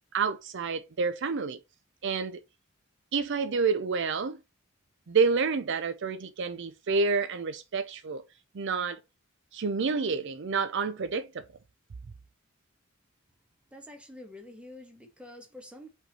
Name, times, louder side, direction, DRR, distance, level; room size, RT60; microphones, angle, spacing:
voice 1, 0.1-1.6 2.0-2.4 3.1-4.4 5.1-8.2 8.5-9.0 9.5-11.4, right 4 dB, 60° right, 0.5 m, -28 dB
voice 2, 13.7-15.9, left 1 dB, 5° right, 1.4 m, -47 dB
5.3 x 4.5 x 4.2 m
head